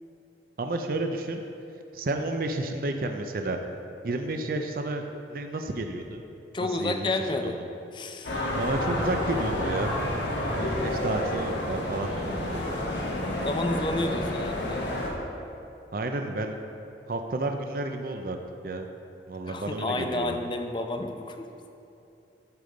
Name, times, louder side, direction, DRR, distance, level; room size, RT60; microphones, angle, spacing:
voice 1, 0.6-1.4 1.9-3.6 4.0-5.0 5.3-6.2 6.6-7.1 7.4-7.6 8.3-9.9 10.6-12.7 15.9-16.6 17.1-18.4 18.6-18.9 19.3-20.4, right 2 dB, 50° right, 5 dB, 0.5 m, -31 dB
voice 2, 6.5-7.6 7.9-8.3 13.4-15.0 19.5-21.5, left 2 dB, 25° left, 6 dB, 0.5 m, -30 dB
sound 1, 8.2-15.1, left 1 dB, 85° left, 1.3 m, -29 dB
11.5 x 5.2 x 3.9 m, 2.8 s
head